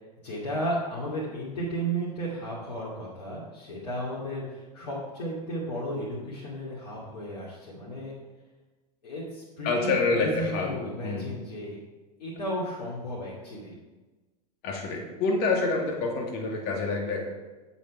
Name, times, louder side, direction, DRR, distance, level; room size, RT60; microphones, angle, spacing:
voice 1, 0.2-8.1 9.0-11.8 12.2-13.8, right 1 dB, 80° left, -7 dB, 2.4 m, -34 dB
voice 2, 9.6-11.4 14.6-17.3, left 3 dB, 55° left, 1 dB, 2.4 m, -27 dB
8.3 x 7.0 x 4.9 m, 1.2 s
hypercardioid pair, 85°, 20 cm